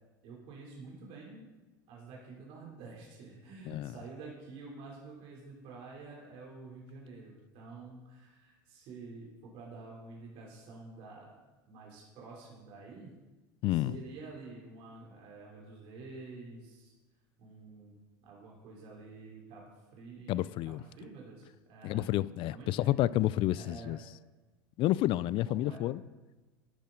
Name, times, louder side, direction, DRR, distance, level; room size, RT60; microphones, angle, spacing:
voice 1, 0.2-1.5 1.9-11.3 11.7-13.2 13.7-16.9 17.4-18.0 18.2-22.1 22.5-22.9 23.5-24.0 25.4-25.8, right 3 dB, 55° right, 3.2 m, -49 dB
voice 2, 13.6-14.0 20.3-20.8 21.8-24.0 24.8-26.0, left 15 dB, 45° left, 0.4 m, -30 dB
11.5 x 10.5 x 3.8 m
hypercardioid pair, 100°, 12 cm